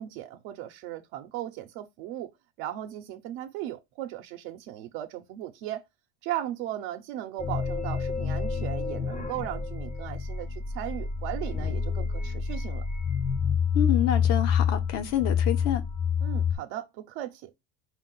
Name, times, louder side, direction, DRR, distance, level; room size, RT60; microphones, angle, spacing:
voice 1, 0.0-2.3 2.6-5.8 6.2-12.8 16.2-17.5, right 13 dB, 85° right, 0.7 m, -37 dB
sound 1, 7.4-16.5, left 6 dB, 25° left, 0.6 m, -28 dB
voice 2, 13.7-15.8, left 11 dB, 60° left, 1.0 m, -28 dB
4.4 x 2.4 x 3.8 m
cardioid pair, 135°, 30 cm